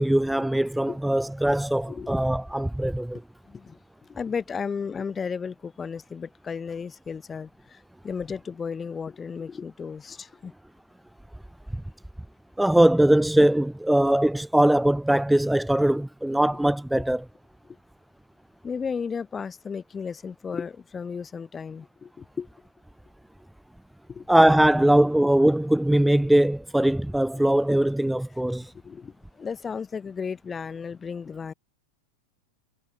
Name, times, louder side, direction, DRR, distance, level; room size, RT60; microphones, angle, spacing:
voice 1, 0.0-3.2 12.6-17.2 24.3-28.7, right 1 dB, 5° right, 0.4 m, -21 dB
voice 2, 3.4-10.5 18.6-22.5 24.1-24.3 28.6-31.5, left 6 dB, 20° left, 1.0 m, -34 dB
figure-of-eight pair, 90°, 0 cm